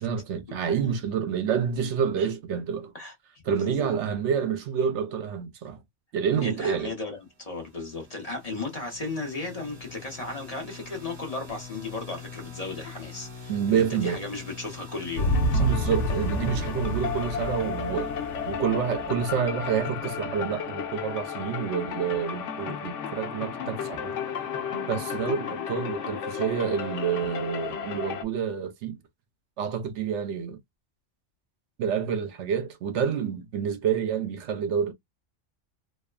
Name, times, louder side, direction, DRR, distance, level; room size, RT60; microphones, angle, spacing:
voice 1, 0.0-2.9 3.5-5.8 6.1-6.9 13.5-14.2 15.6-18.1 18.5-24.1 24.9-29.0 29.6-30.6 31.8-34.9, right 7 dB, 75° right, 0.9 m, -28 dB
voice 2, 3.5-3.9 6.4-15.7 25.2-25.3, left 3 dB, 35° left, 0.9 m, -35 dB
sound 1, 7.5-19.3, left 4 dB, 45° right, 1.0 m, -45 dB
sound 2, 15.2-28.2, left 3 dB, 85° left, 1.0 m, -31 dB
3.2 x 2.0 x 2.2 m
omnidirectional pair, 1.2 m